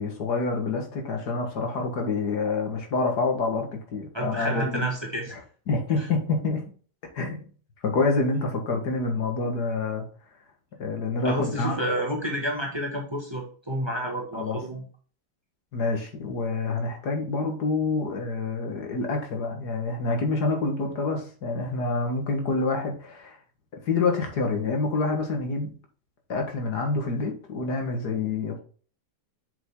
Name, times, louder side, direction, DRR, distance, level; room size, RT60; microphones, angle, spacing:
voice 1, 0.0-4.8 5.7-6.7 7.1-7.5 7.8-10.1 10.8-11.8 14.3-14.6 15.7-23.4 23.9-25.7 26.3-28.6, left 3 dB, 70° left, 2.1 m, -27 dB
voice 2, 4.1-5.4 6.0-6.1 11.2-14.8, right 1 dB, 15° right, 1.5 m, -30 dB
7.1 x 5.5 x 3.7 m
omnidirectional pair, 1.8 m